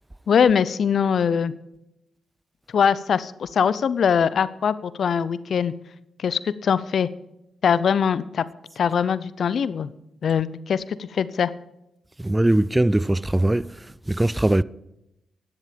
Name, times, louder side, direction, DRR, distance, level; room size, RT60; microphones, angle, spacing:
voice 1, 0.3-1.5 2.7-5.7 6.2-7.1 7.6-8.4 8.8-9.9 10.2-11.5, left 7 dB, 65° left, 0.5 m, -22 dB
voice 2, 12.2-13.7 14.1-14.6, right 1 dB, 15° right, 0.4 m, -20 dB
10.5 x 10.0 x 5.2 m
supercardioid pair, 45°, 0 cm